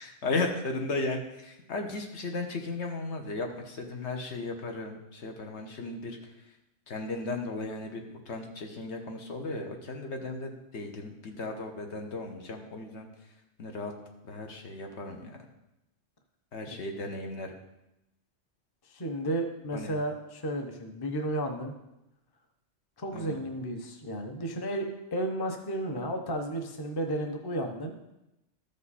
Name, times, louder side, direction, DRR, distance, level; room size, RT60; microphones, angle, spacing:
voice 1, 0.0-6.2 6.9-13.1 13.6-13.9 14.2-15.4 16.5-17.5 19.7-19.9 23.1-23.4, left 3 dB, 70° left, 3 dB, 1.3 m, -35 dB
voice 2, 18.9-21.7 23.0-28.0, right 1 dB, 25° left, 4 dB, 0.7 m, -33 dB
13.0 x 5.3 x 4.1 m, 0.91 s
omnidirectional pair, 1.2 m